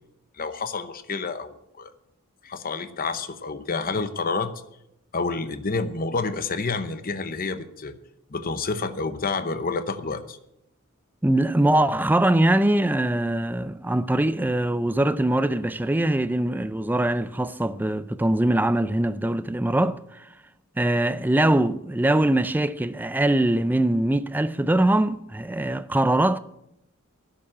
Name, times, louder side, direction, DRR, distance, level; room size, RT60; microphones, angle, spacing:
voice 1, 0.4-1.9 2.4-4.5 5.1-7.9 8.3-10.4, left 4 dB, 40° left, 0.8 m, -29 dB
voice 2, 11.2-20.3 20.8-26.4, right 1 dB, 10° right, 0.4 m, -22 dB
12.0 x 7.1 x 9.8 m
head